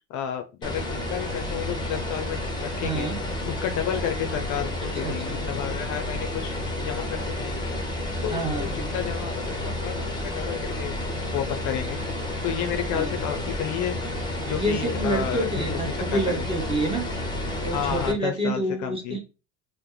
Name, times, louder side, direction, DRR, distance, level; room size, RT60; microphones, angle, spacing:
voice 1, 0.1-3.1 3.4-7.7 8.2-10.9 11.3-12.0 12.4-14.0 14.4-15.8 16.1-16.5 17.7-19.2, left 10 dB, 50° left, 7 dB, 0.5 m, -31 dB
sound 1, 0.6-18.1, left 1 dB, 10° left, 0.8 m, -30 dB
voice 2, 2.8-3.2 5.0-5.4 8.3-8.9 12.9-13.2 14.6-17.1 17.6-19.2, right 1 dB, 15° right, 2 dB, 1.0 m, -28 dB
2.9 x 2.1 x 3.7 m, 0.32 s
supercardioid pair, 100°, 40 cm